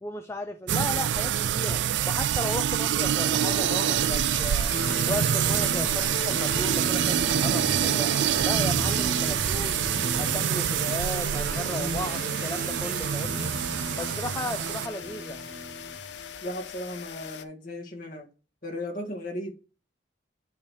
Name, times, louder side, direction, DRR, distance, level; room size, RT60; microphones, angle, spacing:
voice 1, 0.0-4.7 5.1-8.1 8.4-9.9 10.2-13.5 14.0-15.4, left 1 dB, 15° left, 0.4 m, -35 dB
sound 1, 0.7-14.9, right 10 dB, 70° right, 0.3 m, -26 dB
sound 2, 3.4-17.4, left 8 dB, 65° left, 0.6 m, -40 dB
sound 3, 4.7-16.2, right 1 dB, 50° right, 1.2 m, -35 dB
voice 2, 16.4-18.3 18.6-19.5, left 1 dB, 45° left, 1.8 m, -36 dB
9.3 x 3.1 x 5.6 m
head